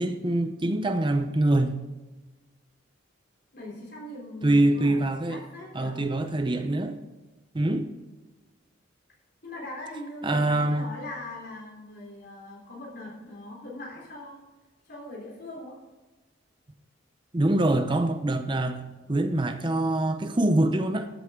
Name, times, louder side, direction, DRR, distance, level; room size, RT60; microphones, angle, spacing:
voice 1, 0.0-1.8 4.4-5.4 5.7-7.0 7.5-7.9 10.2-10.9 17.3-18.8 19.1-21.1, right 1 dB, 25° right, 0.6 m, -24 dB
voice 2, 3.5-6.0 9.4-14.4 14.9-15.8, left 1 dB, 50° left, 3.4 m, -41 dB
13.5 x 7.7 x 3.7 m
head